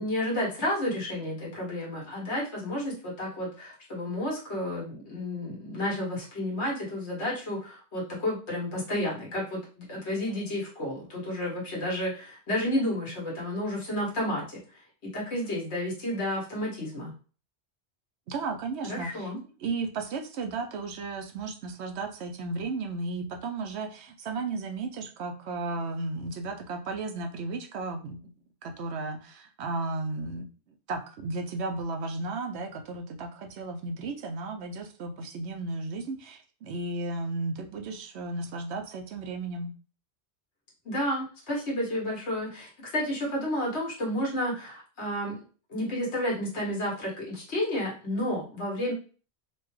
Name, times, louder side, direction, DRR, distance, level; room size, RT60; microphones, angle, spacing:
voice 1, 0.0-14.6 15.0-17.1 18.8-19.4 40.8-45.3 45.7-48.9, left 1 dB, 85° left, -4 dB, 1.6 m, -31 dB
voice 2, 18.3-19.3 19.6-28.3 28.6-30.5 30.9-39.7, right 3 dB, 80° right, 5 dB, 0.9 m, -34 dB
4.2 x 2.2 x 3.1 m, 0.38 s
omnidirectional pair, 1.1 m